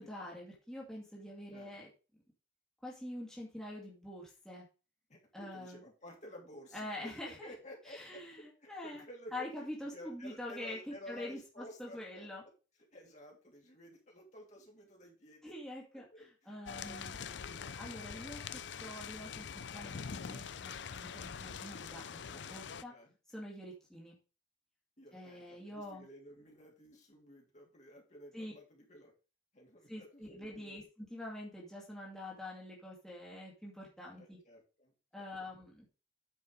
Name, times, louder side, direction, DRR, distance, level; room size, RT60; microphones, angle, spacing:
voice 1, 0.0-1.9 2.8-4.6 5.3-5.8 6.7-7.5 7.9-9.0 9.3-12.4 15.4-17.2 17.8-22.0 22.3-22.9 23.3-24.2 25.1-26.1 28.3-28.5 29.9-34.4 35.1-35.9, left 1 dB, 5° left, -5 dB, 2.4 m, -46 dB
voice 2, 5.1-12.3 12.9-15.6 16.1-17.8 18.0-18.5 22.9-23.2 25.0-29.1 29.5-30.8 34.2-35.3, equal, 35° left, 0 dB, 2.8 m, -53 dB
sound 1, 16.7-22.8, left 7 dB, 65° left, 0.5 m, -44 dB
9.3 x 5.4 x 5.1 m, 0.33 s
head